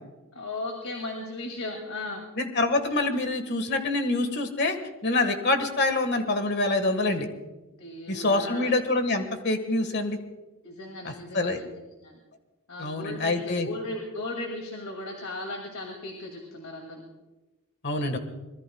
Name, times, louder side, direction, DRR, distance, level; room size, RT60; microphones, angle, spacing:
voice 1, 0.3-2.3 7.8-8.7 10.6-12.2 12.7-17.0, left 2 dB, 70° left, 2 dB, 2.5 m, -36 dB
voice 2, 2.4-4.8 5.0-7.3 8.1-10.2 11.0-11.6 12.8-13.7 17.8-18.2, left 2 dB, 50° left, 7 dB, 1.6 m, -26 dB
25.0 x 21.0 x 2.3 m, 1.1 s
head